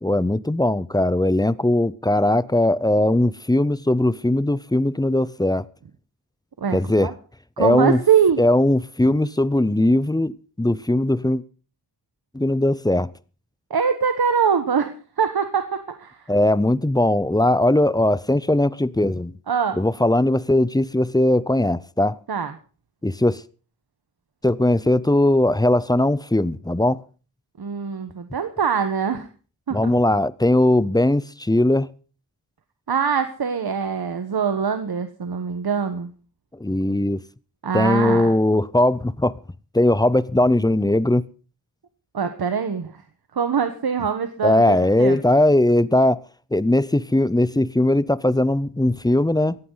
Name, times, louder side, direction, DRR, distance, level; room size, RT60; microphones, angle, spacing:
voice 1, 0.0-5.7 6.7-7.1 7.6-8.0 8.4-11.4 12.3-13.1 16.3-19.3 19.8-22.2 23.0-23.4 24.4-27.0 29.7-31.9 36.6-37.2 37.7-39.4 39.7-41.2 44.4-46.2 46.5-49.6, left 1 dB, 10° left, 0.6 m, -19 dB
voice 2, 7.6-8.5 13.7-16.3 19.5-19.8 22.3-22.5 27.6-29.3 29.7-29.9 32.9-36.1 37.6-38.3 42.1-43.0 43.3-45.2, right 6 dB, 75° right, 1.3 m, -23 dB
17.5 x 15.0 x 4.0 m
wide cardioid pair, 70°, 38 cm